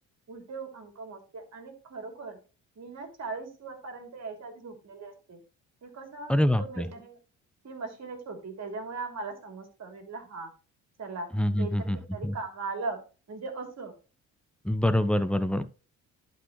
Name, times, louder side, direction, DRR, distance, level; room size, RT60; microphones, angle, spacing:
voice 1, 0.3-2.4 2.7-5.4 5.8-7.2 7.6-10.5 11.0-11.3 11.6-13.0 13.3-13.9, right 3 dB, 45° right, 4 dB, 3.1 m, -39 dB
voice 2, 6.3-6.9 11.3-12.0 12.2-12.3 14.6-15.6, left 1 dB, 5° left, 12 dB, 0.8 m, -25 dB
11.5 x 5.3 x 3.1 m, 0.33 s
hypercardioid pair, 60°, 38 cm